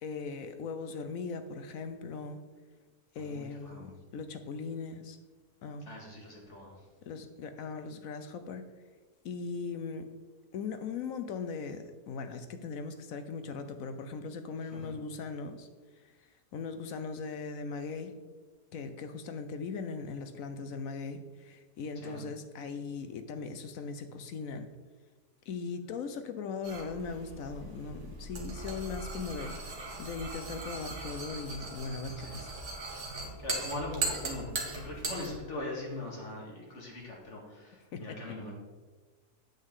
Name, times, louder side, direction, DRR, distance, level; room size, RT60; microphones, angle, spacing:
voice 1, 0.0-2.4 3.1-5.2 5.6-5.9 7.0-8.6 9.2-10.1 10.5-15.7 16.0-18.1 18.7-24.7 25.5-29.6 30.0-32.6 37.9-38.2, left 4 dB, 65° left, 9 dB, 1.0 m, -39 dB
voice 2, 3.2-3.9 5.9-6.9 14.7-14.9 22.0-22.3 32.2-32.4 33.1-38.5, left 2 dB, 50° left, -2 dB, 2.3 m, -41 dB
sound 1, 26.6-35.4, right 2 dB, 50° right, 1.6 m, -39 dB
8.8 x 8.0 x 3.7 m, 1.3 s
omnidirectional pair, 1.7 m